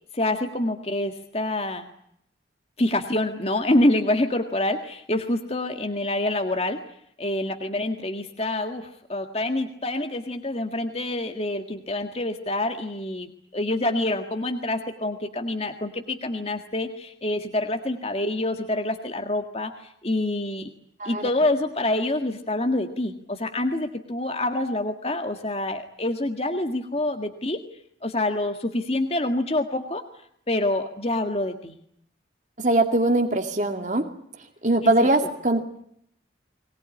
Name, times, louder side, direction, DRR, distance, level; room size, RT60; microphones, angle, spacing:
voice 1, 0.1-1.9 2.8-6.8 7.2-19.7 20.0-20.7 21.1-27.6 28.0-30.0 30.5-31.7 34.8-34.9 35.2-35.3, left 1 dB, 30° left, 5 dB, 1.8 m, -26 dB
voice 2, 21.0-21.3 32.6-34.1 34.6-35.8, right 2 dB, 40° right, 4 dB, 2.3 m, -22 dB
23.0 x 20.0 x 9.9 m, 0.71 s
head